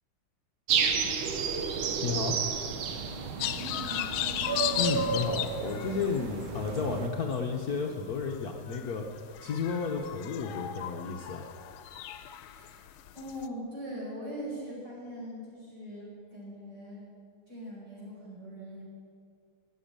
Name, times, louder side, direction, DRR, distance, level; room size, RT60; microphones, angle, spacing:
sound 1, 0.7-7.1, right 6 dB, 75° right, 1.8 m, -31 dB
voice 1, 2.0-2.4 4.8-11.5, left 5 dB, 55° left, 1 dB, 1.2 m, -32 dB
sound 2, 3.4-6.8 7.2-13.5, left 11 dB, 80° left, 1.4 m, -36 dB
voice 2, 3.6-4.3 12.5-12.8 13.1-17.0 17.5-18.8, equal, 55° right, -6 dB, 5.6 m, -41 dB
13.5 x 8.2 x 8.7 m, 2.2 s
omnidirectional pair, 2.3 m